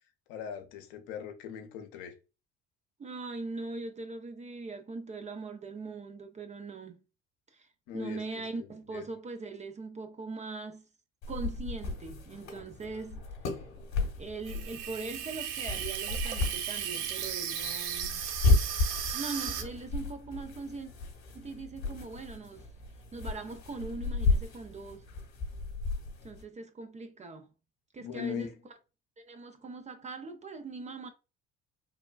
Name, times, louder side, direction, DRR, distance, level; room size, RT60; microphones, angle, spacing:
voice 1, 0.3-2.1 7.9-9.0 28.0-28.5, left 7 dB, 70° left, 0.7 m, -40 dB
voice 2, 3.0-7.0 7.5-7.7 7.9-10.8 11.3-13.6 14.2-18.2 19.1-20.9 21.3-22.7 23.1-25.1 26.2-27.5 27.9-28.5 29.2-31.1, right 3 dB, 20° right, 0.4 m, -41 dB
sound 1, 11.2-26.4, left 3 dB, 55° left, 1.0 m, -33 dB
Water tap faucet / Sink (filling or washing), 14.5-19.6, right 9 dB, 80° right, 0.5 m, -36 dB
3.3 x 2.2 x 2.2 m
hypercardioid pair, 65°, 34 cm